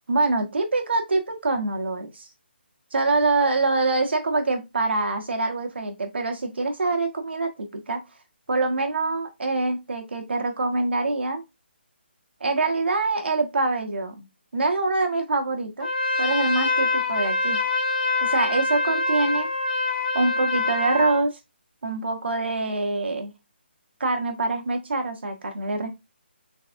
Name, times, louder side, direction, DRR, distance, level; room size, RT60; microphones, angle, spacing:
voice 1, 0.1-2.3 2.9-8.0 8.5-11.4 12.4-14.3 14.5-15.9 16.2-17.6 18.2-19.5 20.1-21.4 21.8-23.3 24.0-25.9, right 3 dB, 70° right, 1.1 m, -25 dB
Trumpet, 15.8-21.2, left 3 dB, 50° left, 1.8 m, -25 dB
3.9 x 3.5 x 2.5 m
figure-of-eight pair, 150°, 6 cm